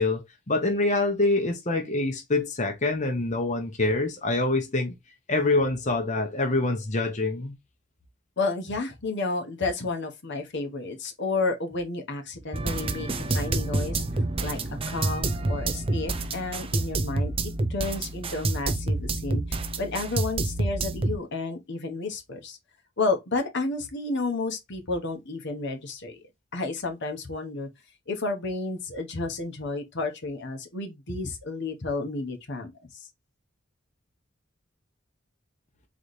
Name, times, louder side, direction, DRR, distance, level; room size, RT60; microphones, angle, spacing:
voice 1, 0.0-4.9 5.3-7.5, left 2 dB, 35° left, 0.9 m, -25 dB
voice 2, 8.4-14.0 14.4-14.6 14.9-22.6 23.0-26.2 26.5-27.7 28.1-33.1, left 3 dB, 60° left, 1.1 m, -31 dB
sound 1, 12.5-21.2, right 2 dB, 25° right, 0.5 m, -28 dB
4.1 x 3.2 x 3.2 m
head